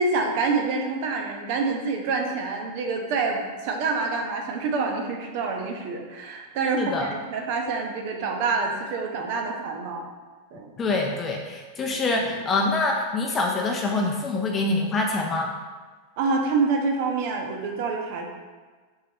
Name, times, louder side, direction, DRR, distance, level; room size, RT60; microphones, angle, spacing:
voice 1, 0.0-10.1 10.5-10.7 16.2-18.3, right 4 dB, 50° right, 2 dB, 0.9 m, -27 dB
voice 2, 6.8-7.1 10.8-15.5, left 3 dB, 25° left, 1 dB, 0.6 m, -25 dB
6.0 x 5.8 x 3.0 m, 1.4 s
figure-of-eight pair, 90°, 0 cm